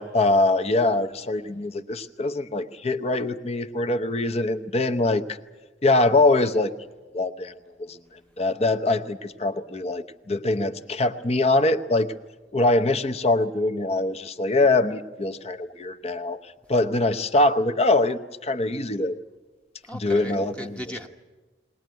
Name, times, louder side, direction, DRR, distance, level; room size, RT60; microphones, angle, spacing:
voice 1, 0.0-5.2 5.8-6.7 7.1-7.5 7.8-8.0 8.4-12.1 12.5-16.4 16.7-19.2 19.9-20.8, left 2 dB, 35° left, 11 dB, 0.8 m, -23 dB
voice 2, 19.8-21.1, equal, 5° left, 3 dB, 0.9 m, -37 dB
21.0 x 18.5 x 9.3 m, 1.2 s
head